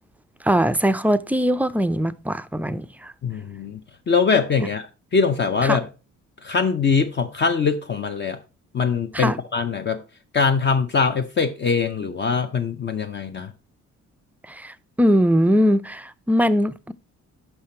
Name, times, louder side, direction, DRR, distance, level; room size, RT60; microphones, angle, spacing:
voice 1, 0.4-3.1 4.6-4.7 5.6-5.8 9.1-9.4 14.5-16.9, equal, 5° right, 0.4 m, -21 dB
voice 2, 3.2-3.8 4.1-4.8 5.1-5.9 6.4-8.4 8.7-10.0 10.3-13.5, left 5 dB, 35° left, 0.6 m, -22 dB
5.8 x 5.6 x 4.3 m
cardioid pair, 90°, 30 cm